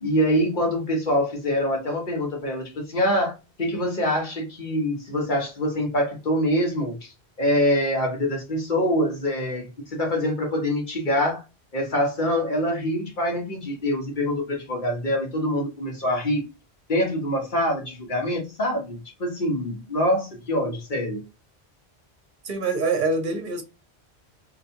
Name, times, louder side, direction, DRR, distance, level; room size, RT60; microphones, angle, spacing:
voice 1, 0.0-3.3 3.6-7.1 7.4-11.4 11.7-16.4 16.9-21.2, equal, 45° left, 1.4 m, -25 dB
voice 2, 22.4-23.6, right 3 dB, 50° right, 1.1 m, -25 dB
3.3 x 3.0 x 2.8 m
omnidirectional pair, 1.1 m